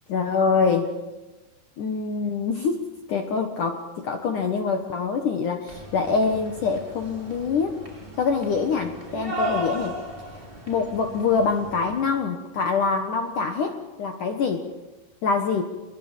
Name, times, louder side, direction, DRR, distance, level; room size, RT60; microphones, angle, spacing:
voice 1, 0.1-0.9 1.8-7.8 8.2-9.9 10.7-14.7 15.2-15.6, left 5 dB, 65° left, 5 dB, 2.1 m, -25 dB
sound 1, 5.7-12.2, equal, 10° right, 4.8 m, -36 dB
25.0 x 22.0 x 7.5 m, 1.1 s
omnidirectional pair, 5.5 m